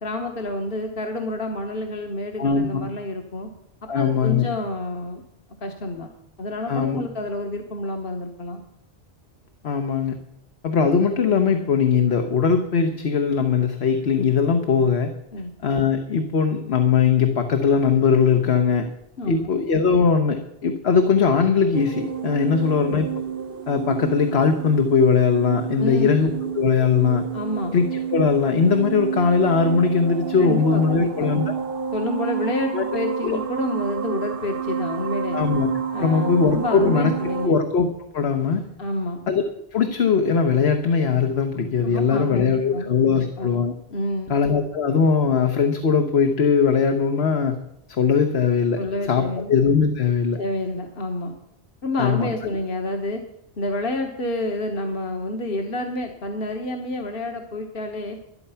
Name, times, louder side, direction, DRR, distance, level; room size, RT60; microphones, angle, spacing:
voice 1, 0.0-3.5 3.9-5.2 5.6-6.1 6.4-8.6 15.3-15.5 19.2-19.5 25.8-26.2 27.3-27.8 30.4-31.3 31.9-35.4 35.9-37.6 38.8-39.2 41.8-43.5 43.9-44.3 48.7-49.5 50.3-51.3 51.8-53.2 53.6-58.2, left 2 dB, 60° left, 3 dB, 1.4 m, -29 dB
voice 2, 2.4-2.8 3.9-4.5 6.7-7.0 9.6-10.2 10.6-15.1 15.6-18.9 19.3-23.2 23.7-27.2 27.7-27.9 28.1-31.5 32.7-32.8 33.2-33.4 35.3-35.7 36.0-37.1 37.4-37.9 38.1-38.7 39.3-39.4 39.7-43.7 44.3-47.6 47.9-50.4 52.0-52.3, left 6 dB, 80° left, 6 dB, 1.3 m, -20 dB
sound 1, 21.7-37.5, right 7 dB, 60° right, 1.0 m, -29 dB
12.5 x 11.5 x 5.7 m, 0.81 s
omnidirectional pair, 1.1 m